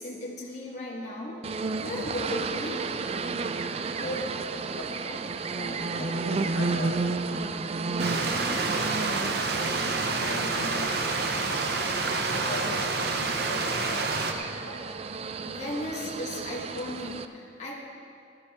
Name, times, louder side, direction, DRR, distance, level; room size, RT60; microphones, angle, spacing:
voice 1, 0.0-1.4 1.8-2.8 14.6-15.1 15.4-17.8, left 1 dB, 35° left, -5 dB, 1.5 m, -36 dB
sound 1, 1.4-17.3, right 4 dB, 30° right, 0.3 m, -33 dB
voice 2, 4.6-7.4 8.1-11.1 12.1-14.2, left 1 dB, 65° left, -2 dB, 1.9 m, -39 dB
Stream, 8.0-14.3, right 3 dB, 55° right, 0.9 m, -28 dB
16.0 x 12.0 x 3.6 m, 2.4 s
head